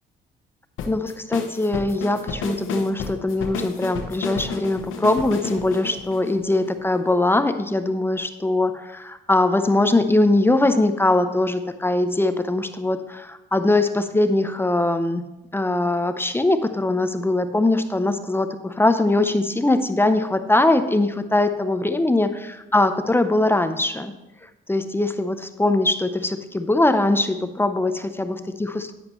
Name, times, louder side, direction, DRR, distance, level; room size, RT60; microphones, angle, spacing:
sound 1, 0.8-7.1, left 5 dB, 90° left, 1.0 m, -32 dB
voice 1, 0.9-15.2 15.5-24.1 24.7-28.9, left 2 dB, 10° left, 9 dB, 0.6 m, -21 dB
10.5 x 9.2 x 3.1 m, 1.0 s
cardioid pair, 90°, 20 cm